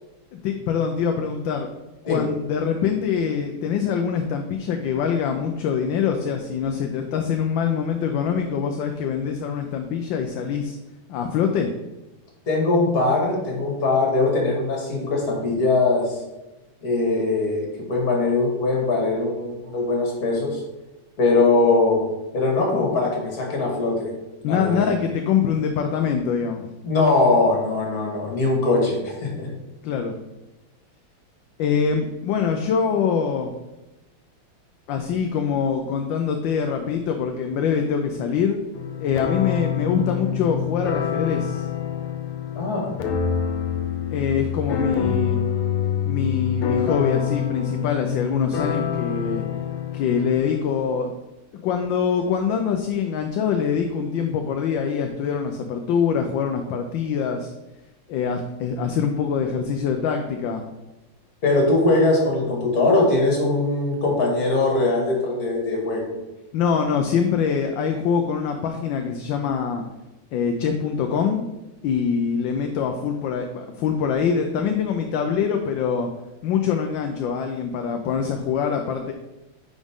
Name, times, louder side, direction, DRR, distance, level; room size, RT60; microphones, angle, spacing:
voice 1, 0.3-1.7 2.0-10.8 11.1-11.7 24.4-26.6 29.8-30.2 31.6-33.5 34.9-38.6 39.0-41.7 44.1-45.4 46.0-49.4 49.9-51.1 51.6-57.5 58.1-60.6 66.5-69.8 70.3-71.4 71.8-76.1 76.4-79.1, left 6 dB, 70° left, 5 dB, 1.3 m, -24 dB
voice 2, 12.5-16.2 16.8-20.6 21.2-22.0 22.3-24.1 24.4-24.9 26.8-29.5 42.6-42.9 61.4-66.1, left 2 dB, 45° left, -1 dB, 2.3 m, -21 dB
sound 1, 38.7-50.6, left 8 dB, 85° left, 1.7 m, -26 dB
9.3 x 4.9 x 3.6 m, 1.0 s
omnidirectional pair, 2.3 m